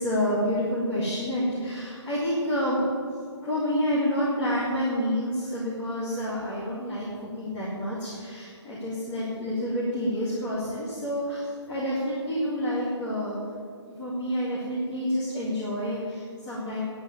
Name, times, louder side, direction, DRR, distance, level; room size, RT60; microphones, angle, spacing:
voice 1, 0.0-2.9 3.4-13.4 14.0-16.8, equal, 10° left, -10 dB, 2.1 m, -28 dB
10.5 x 8.7 x 9.9 m, 2.2 s
hypercardioid pair, 175°, 15 cm